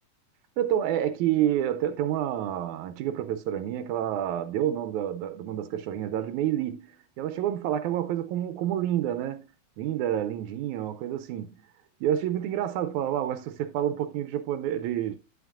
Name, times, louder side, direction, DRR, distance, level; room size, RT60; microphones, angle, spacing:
voice 1, 0.6-9.4 9.8-11.6 12.0-15.2, right 11 dB, 85° right, 2.0 m, -28 dB
11.0 x 8.1 x 2.4 m
omnidirectional pair, 3.4 m